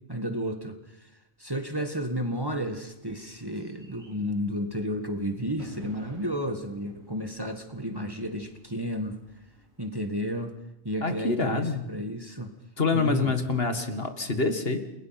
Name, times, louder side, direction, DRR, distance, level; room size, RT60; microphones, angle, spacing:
voice 1, 0.1-0.8 1.4-9.2 9.8-10.5 10.8-11.6 11.9-12.5 12.9-13.3, equal, 20° right, 6 dB, 1.8 m, -32 dB
Bird / Fireworks, 1.6-10.8, right 1 dB, 80° right, 5.3 m, -54 dB
voice 2, 11.0-11.9 12.8-14.8, left 4 dB, 50° left, 7 dB, 2.1 m, -26 dB
30.0 x 21.5 x 5.9 m, 0.85 s
omnidirectional pair, 1.3 m